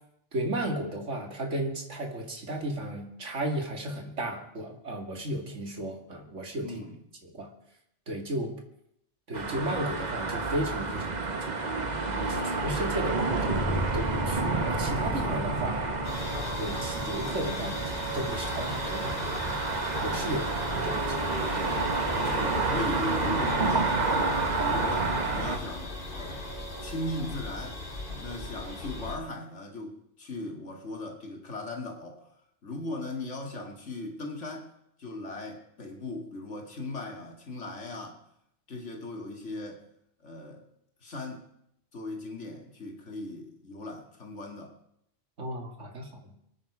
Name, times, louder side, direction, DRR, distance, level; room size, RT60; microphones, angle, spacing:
voice 1, 0.3-6.7 7.2-7.5 8.1-8.5 9.3-13.7 13.9-15.9 16.6-17.8 18.1-19.6 20.0-20.4 20.7-21.7 22.1-22.3 45.4-46.3, right 1 dB, 75° right, 3 dB, 2.6 m, -34 dB
voice 2, 6.6-7.0 20.2-20.5 22.2-26.4 26.8-27.8 28.2-32.3 32.6-34.7 35.0-38.2 38.7-39.8 40.2-40.6 41.0-41.5 41.9-44.8, left 2 dB, 70° left, 2 dB, 2.6 m, -38 dB
sound 1, 9.3-25.6, right 3 dB, 35° right, 1.4 m, -30 dB
sound 2, 13.5-22.0 24.3-28.8, equal, 10° right, 3.4 m, -39 dB
sound 3, 16.0-29.2, left 1 dB, 45° left, 2.3 m, -37 dB
24.0 x 9.6 x 4.9 m, 0.76 s
omnidirectional pair, 1.2 m